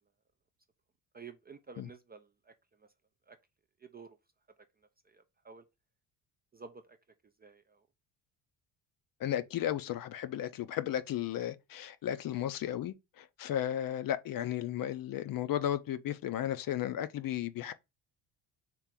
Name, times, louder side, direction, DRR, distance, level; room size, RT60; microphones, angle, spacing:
voice 1, 1.1-2.5 2.8-2.9 3.3-3.4 3.8-4.2 5.0-5.6 6.5-7.0 7.4-7.9, right 5 dB, 20° right, 0.4 m, -51 dB
voice 2, 9.2-17.7, left 11 dB, 50° left, 0.5 m, -34 dB
3.2 x 3.0 x 3.6 m
supercardioid pair, 75°, 46 cm